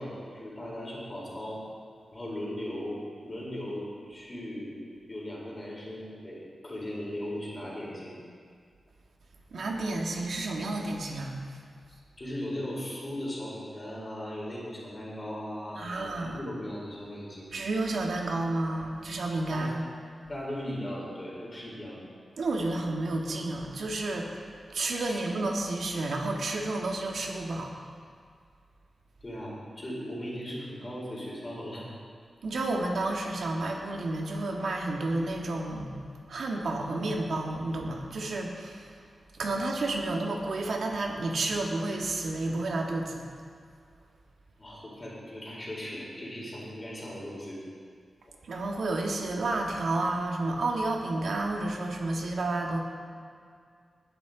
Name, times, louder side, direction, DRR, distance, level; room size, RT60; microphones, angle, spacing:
voice 1, 0.0-1.6 2.1-4.8 5.1-8.2 11.9-17.5 19.5-19.7 20.3-22.0 25.0-25.2 29.2-31.9 44.6-47.6, left 1 dB, 25° left, -5 dB, 4.5 m, -38 dB
voice 2, 9.5-11.4 15.8-16.4 17.5-19.8 22.4-24.3 24.7-27.7 32.4-35.9 36.3-38.9 39.3-43.2 48.4-52.8, right 2 dB, 75° right, 1 dB, 1.8 m, -31 dB
20.0 x 10.5 x 4.0 m, 2.2 s
wide cardioid pair, 125°, 0 cm